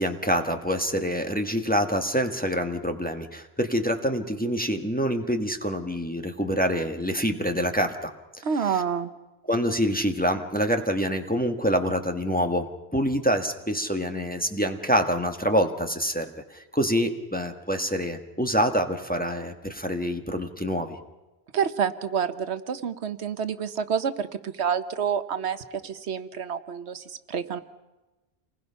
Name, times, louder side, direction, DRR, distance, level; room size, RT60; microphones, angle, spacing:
voice 1, 0.0-8.1 9.5-12.7 12.9-21.0, equal, 10° left, 4 dB, 1.3 m, -26 dB
voice 2, 8.4-9.1 21.5-27.6, right 7 dB, 80° right, 11 dB, 1.2 m, -28 dB
28.0 x 20.0 x 5.7 m, 1.1 s
omnidirectional pair, 1.1 m